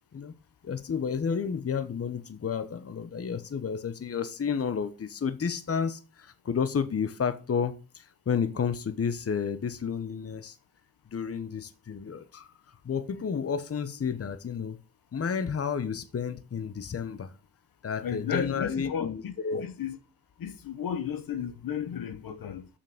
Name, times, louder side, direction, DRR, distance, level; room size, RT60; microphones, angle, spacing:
voice 1, 0.6-10.6 11.1-12.5 12.8-14.8 15.1-17.3 17.8-19.6, left 6 dB, 40° left, 1.1 m, -31 dB
voice 2, 18.0-20.0 20.4-22.7, left 8 dB, 60° left, 1.1 m, -34 dB
7.1 x 5.8 x 7.3 m
cardioid pair, 65°, 38 cm